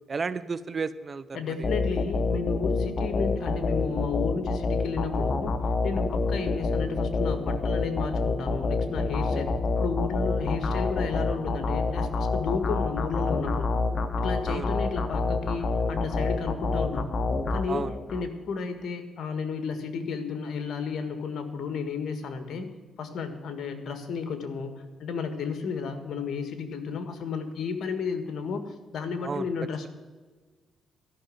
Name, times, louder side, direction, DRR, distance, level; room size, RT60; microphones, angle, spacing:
voice 1, 0.1-1.7 14.5-14.7 17.7-17.9 29.2-29.5, right 5 dB, 35° right, 16 dB, 0.6 m, -33 dB
voice 2, 1.3-5.5 5.8-9.5 9.8-13.7 14.2-17.1 17.5-22.7 23.0-29.9, left 5 dB, 65° left, 8 dB, 1.7 m, -32 dB
sound 1, 1.6-18.2, left 3 dB, 40° left, 1.2 m, -28 dB
13.0 x 6.2 x 9.2 m, 1.4 s
cardioid pair, 90°, 0 cm